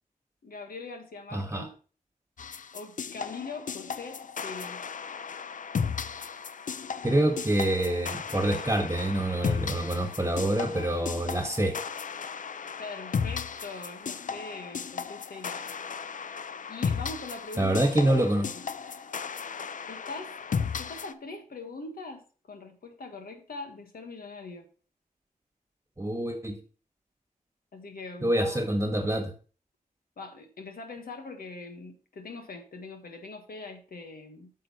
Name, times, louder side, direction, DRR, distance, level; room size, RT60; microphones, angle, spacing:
voice 1, 0.4-1.8 2.7-4.8 12.8-15.7 16.7-18.6 19.9-20.3 20.8-24.7 27.7-28.6 30.2-34.5, left 3 dB, 85° left, 5 dB, 1.4 m, -42 dB
voice 2, 1.3-1.7 7.0-11.8 17.6-18.5 26.0-26.6 28.2-29.3, right 1 dB, 20° right, 4 dB, 1.5 m, -26 dB
sound 1, 2.4-21.1, left 6 dB, 60° left, 0.5 m, -35 dB
8.7 x 6.4 x 3.0 m, 0.38 s
cardioid pair, 60°, 15 cm